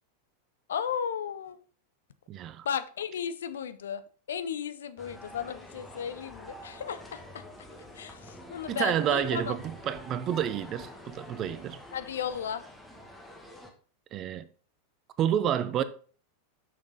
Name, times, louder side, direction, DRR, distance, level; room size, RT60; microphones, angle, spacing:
voice 1, 0.7-1.6 2.6-4.0 4.3-7.4 7.9-9.6 11.9-12.6, left 8 dB, 65° left, 0.5 m, -34 dB
voice 2, 2.3-2.7 8.7-11.8 14.1-14.4 15.2-15.8, right 10 dB, 35° right, 0.6 m, -29 dB
sound 1, 5.0-13.7, left 1 dB, 5° left, 1.4 m, -47 dB
6.3 x 6.0 x 3.9 m
figure-of-eight pair, 90°, 0 cm